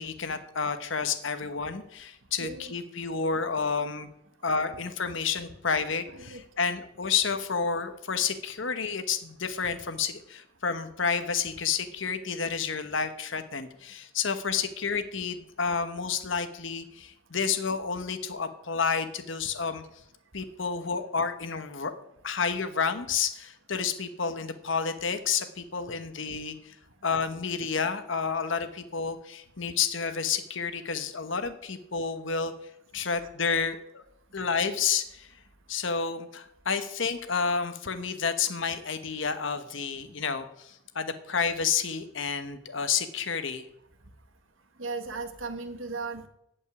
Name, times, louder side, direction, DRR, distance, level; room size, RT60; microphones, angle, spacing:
voice 1, 0.0-4.1 4.4-19.8 20.3-21.9 22.2-26.7 27.0-32.5 32.9-34.0 34.3-35.3 35.7-43.7, left 6 dB, 65° left, 9 dB, 1.1 m, -30 dB
voice 2, 2.4-2.7 6.2-6.4 44.8-46.3, right 3 dB, 70° right, 5 dB, 1.6 m, -36 dB
15.5 x 5.4 x 9.8 m, 0.80 s
head